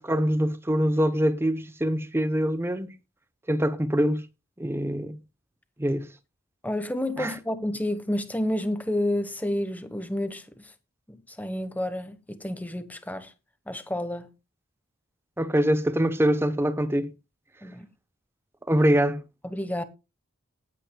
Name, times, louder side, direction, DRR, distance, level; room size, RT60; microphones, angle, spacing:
voice 1, 0.0-2.9 3.5-4.3 4.6-5.2 5.8-6.1 7.2-7.4 15.4-17.1 18.7-19.2, equal, 10° right, 0.7 m, -24 dB
voice 2, 6.6-10.7 11.1-13.3 13.7-14.3 17.6-17.9 19.4-19.8, left 1 dB, 10° left, 1.1 m, -30 dB
18.5 x 9.1 x 2.2 m
head